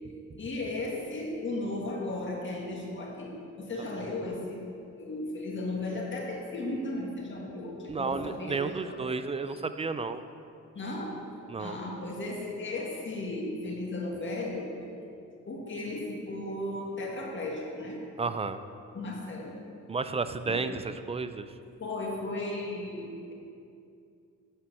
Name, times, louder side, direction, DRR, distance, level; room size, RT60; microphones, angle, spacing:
voice 1, 0.4-4.7 5.0-9.0 10.7-11.2 11.6-14.7 15.5-18.0 18.9-19.6 20.5-20.7 21.8-23.3, left 2 dB, 40° left, -1 dB, 1.9 m, -35 dB
voice 2, 7.9-10.2 11.5-11.8 18.2-18.6 19.9-21.5, right 4 dB, 20° right, 11 dB, 0.4 m, -32 dB
8.7 x 4.5 x 7.0 m, 2.5 s
cardioid pair, 90°, 30 cm